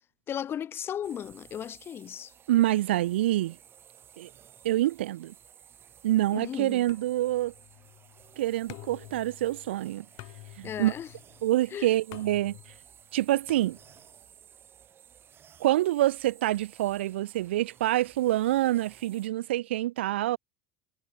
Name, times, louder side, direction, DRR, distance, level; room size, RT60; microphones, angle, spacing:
voice 1, 0.3-2.3 6.3-6.8 10.6-11.1 11.7-11.9, left 9 dB, 40° left, 2.4 m, -36 dB
sound 1, 1.0-19.3, right 9 dB, 35° right, 4.2 m, -56 dB
voice 2, 2.5-3.6 4.2-4.3 4.6-5.3 6.0-7.5 8.4-10.1 10.6-10.9 11.4-12.6 13.1-13.8 15.6-20.4, right 15 dB, 70° right, 0.4 m, -26 dB
sound 2, 6.9-14.3, left 23 dB, 55° left, 7.7 m, -50 dB
figure-of-eight pair, 70°, 6 cm